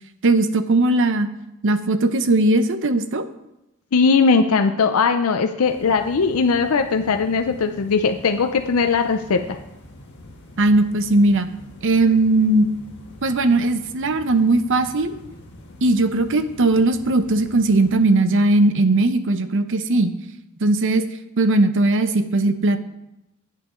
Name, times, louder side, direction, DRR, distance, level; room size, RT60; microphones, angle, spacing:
voice 1, 0.2-1.3 1.6-3.2 10.6-11.5 11.8-12.7 13.2-15.1 15.8-20.1 20.6-21.0 21.4-22.8, right 2 dB, 60° right, 11 dB, 0.7 m, -18 dB
voice 2, 3.9-9.4, left 5 dB, 75° left, 6 dB, 0.5 m, -19 dB
sound 1, 5.6-18.0, left 1 dB, 50° left, 1.5 m, -44 dB
9.9 x 8.5 x 3.8 m, 0.88 s
head